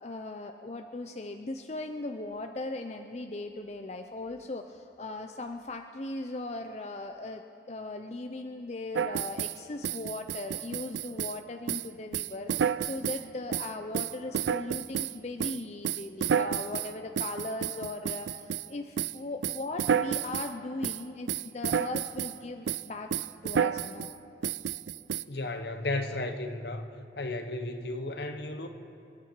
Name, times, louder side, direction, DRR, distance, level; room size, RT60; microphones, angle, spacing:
voice 1, 0.0-23.1 23.4-24.1, left 2 dB, 35° left, 0.5 m, -38 dB
sound 1, 8.9-9.6 9.8-11.4 11.7-11.9 12.1-13.2 13.5-15.1 15.4-18.7 19.0-19.2 19.4-20.5 20.8-21.0 21.3-22.4 22.7-22.9 23.1-24.1 24.4-25.2, right 8 dB, 80° right, 0.4 m, -31 dB
voice 2, 25.3-26.9 27.2-28.7, left 2 dB, 70° left, 1.1 m, -34 dB
27.5 x 10.0 x 4.7 m
head